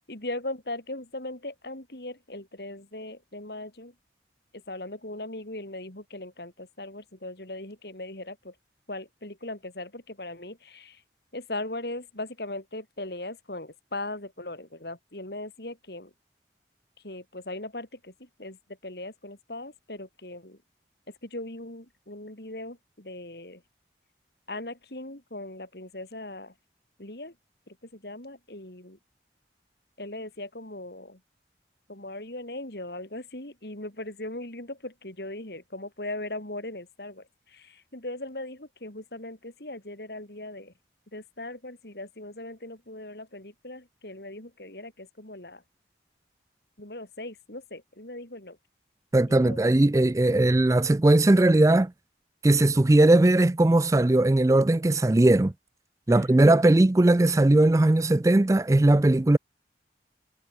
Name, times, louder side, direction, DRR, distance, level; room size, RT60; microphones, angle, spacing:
voice 1, 0.1-3.9 4.5-8.5 8.9-11.0 11.3-16.1 17.0-18.6 18.8-20.6 21.1-23.6 24.5-26.5 27.0-27.3 27.7-29.0 30.0-31.2 31.9-40.7 41.1-45.6 46.8-48.6 49.3-49.6 56.1-56.5, left 2 dB, 60° left, 3.7 m, -39 dB
voice 2, 49.1-51.9 52.4-55.5 56.1-59.4, right 2 dB, 15° right, 0.4 m, -19 dB
head